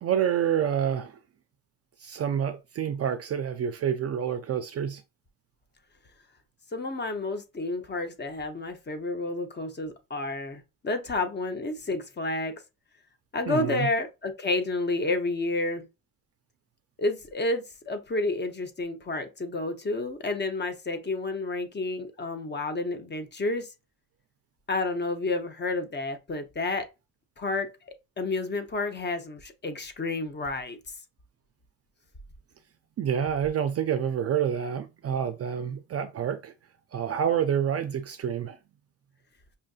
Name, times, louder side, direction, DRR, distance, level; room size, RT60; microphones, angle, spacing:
voice 1, 0.0-1.2 2.0-5.0 13.5-13.9 33.0-36.5 36.9-38.6, right 8 dB, 40° right, 0.4 m, -28 dB
voice 2, 6.7-12.6 13.3-15.9 17.0-23.7 24.7-26.9 27.4-27.7 28.2-30.8, left 2 dB, 25° left, 0.7 m, -30 dB
5.5 x 2.5 x 2.4 m
cardioid pair, 85°, 39 cm